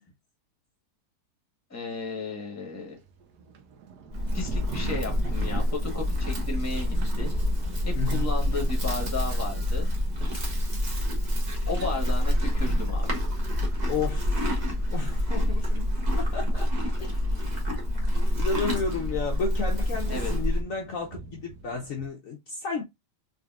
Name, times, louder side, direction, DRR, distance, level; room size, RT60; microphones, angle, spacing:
voice 1, 1.7-3.0 4.3-7.3 7.8-9.9 11.6-13.1 20.1-20.3, left 3 dB, 10° left, 1.0 m, -34 dB
Thunder, 2.9-22.1, right 6 dB, 70° right, 1.3 m, -46 dB
Livestock farm animals working animals, 4.1-20.6, left 1 dB, 30° right, 0.9 m, -27 dB
voice 2, 7.9-8.3 13.9-14.6 14.9-17.4 18.4-22.8, left 5 dB, 65° left, 0.9 m, -33 dB
3.9 x 3.3 x 2.4 m
omnidirectional pair, 1.8 m